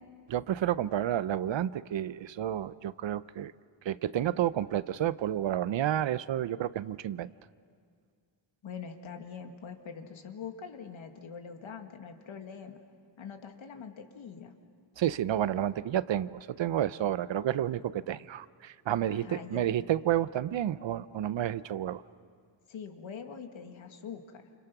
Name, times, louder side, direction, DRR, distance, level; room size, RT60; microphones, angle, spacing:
voice 1, 0.3-3.5 3.8-7.3 15.0-22.0, right 11 dB, 65° right, 16 dB, 0.7 m, -30 dB
voice 2, 8.6-12.8 13.2-14.5 19.1-19.6 22.7-24.4, left 6 dB, 75° left, 5 dB, 2.1 m, -43 dB
29.5 x 28.5 x 6.0 m, 2.1 s
wide cardioid pair, 160°, 48 cm